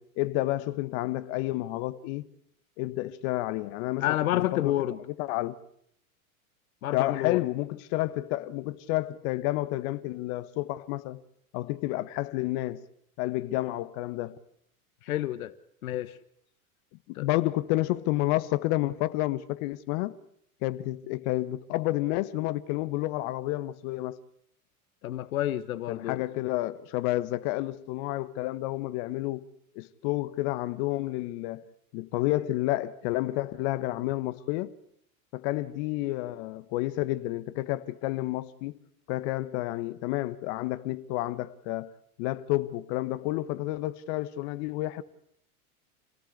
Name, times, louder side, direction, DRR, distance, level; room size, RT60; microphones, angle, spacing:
voice 1, 0.0-2.3 2.8-4.7 5.2-5.6 6.9-11.2 11.5-12.8 13.2-14.4 17.1-20.2 20.6-24.2 25.9-29.5 29.7-31.6 31.9-34.7 35.3-38.7 39.1-41.9 42.2-45.0, left 17 dB, 50° left, 1.5 m, -30 dB
voice 2, 4.0-5.0 6.8-7.4 15.0-15.5 15.8-16.2 17.1-17.3 25.0-26.2, left 13 dB, 70° left, 1.4 m, -29 dB
28.0 x 18.0 x 8.2 m
hypercardioid pair, 100°, 44 cm